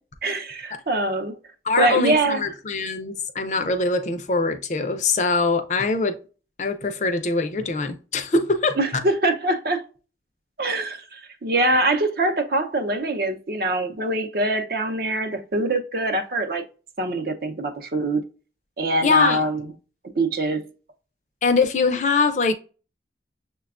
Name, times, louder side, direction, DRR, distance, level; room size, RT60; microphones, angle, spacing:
voice 1, 0.2-1.4 1.8-2.5 8.8-9.9 10.6-16.6 17.0-18.2 18.8-19.7 20.1-20.6, right 2 dB, 55° right, 0.6 m, -23 dB
voice 2, 1.7-6.2 6.6-8.8 19.0-19.4 21.4-22.5, left 4 dB, 40° left, 0.4 m, -22 dB
6.6 x 2.2 x 2.4 m
head